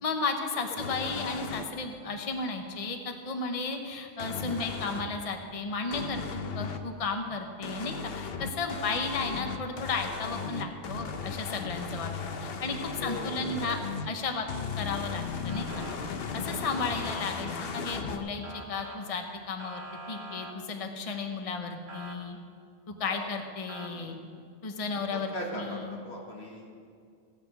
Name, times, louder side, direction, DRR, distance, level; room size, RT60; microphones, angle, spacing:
voice 1, 0.0-12.1 12.4-13.8 14.1-14.5 14.8-15.9 16.3-19.8 20.1-22.4 23.0-24.1 24.6-26.0, left 4 dB, 35° left, 4 dB, 0.9 m, -34 dB
sound 1, 0.8-1.6 4.2-5.1 5.9-6.8 7.6-14.1 14.5-18.2, left 5 dB, 65° left, 1.0 m, -36 dB
voice 2, 13.0-13.3 13.7-13.8 16.6-16.8 23.1-23.3 23.9-24.2 25.1-26.8, left 1 dB, 85° left, -3 dB, 2.2 m, -40 dB
Motor vehicle (road) / Siren, 15.5-16.0 16.6-17.2 18.4-19.0 19.6-20.5 21.9-22.1 23.7-23.9, right 2 dB, 80° right, 1.8 m, -43 dB
16.0 x 6.0 x 7.9 m, 2.3 s
omnidirectional pair, 1.1 m